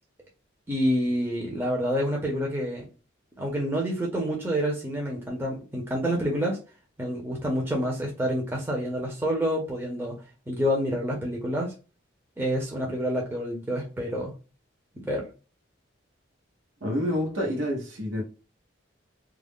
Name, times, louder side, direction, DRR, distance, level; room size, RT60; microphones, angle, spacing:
voice 1, 0.7-2.9 3.4-6.6 7.0-10.1 10.5-11.7 12.4-14.3 15.0-15.2, equal, 10° right, 0.5 m, -28 dB
voice 2, 16.8-18.2, equal, 80° right, 0.8 m, -28 dB
2.3 x 2.0 x 3.5 m
head